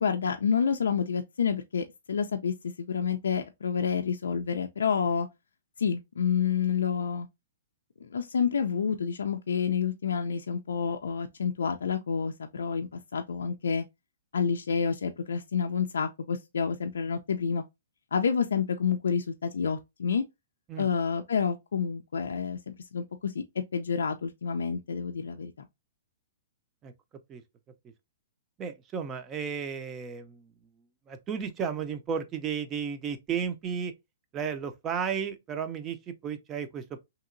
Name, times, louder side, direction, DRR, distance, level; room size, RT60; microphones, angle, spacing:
voice 1, 0.0-5.3 5.8-7.3 8.0-13.8 14.3-17.6 18.1-20.2 20.8-23.4 23.7-25.7, left 6 dB, 80° left, 0.3 m, -29 dB
voice 2, 28.6-30.4 31.1-33.9 34.3-37.0, right 7 dB, 25° right, 0.5 m, -33 dB
2.8 x 2.8 x 2.5 m
hypercardioid pair, 130°, 0 cm